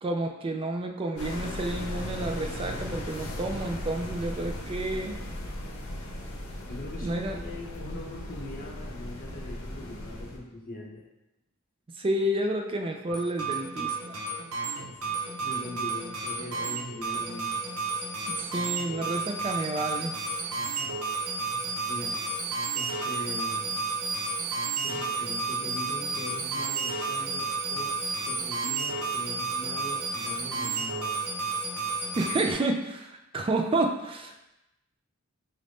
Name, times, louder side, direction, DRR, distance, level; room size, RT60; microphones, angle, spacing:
voice 1, 0.0-5.2 7.0-7.4 11.9-14.2 18.3-20.2 32.2-34.5, right 1 dB, 25° right, 4 dB, 0.3 m, -30 dB
sound 1, 1.2-10.4, left 1 dB, 80° left, 0.7 m, -37 dB
voice 2, 6.7-11.1 14.6-17.6 20.4-22.2 22.7-23.7 24.8-28.0 28.2-31.2, left 1 dB, 40° left, -1 dB, 0.7 m, -41 dB
sound 2, 13.1-32.5, right 4 dB, 85° right, 0.8 m, -32 dB
4.1 x 2.5 x 3.4 m, 0.94 s
head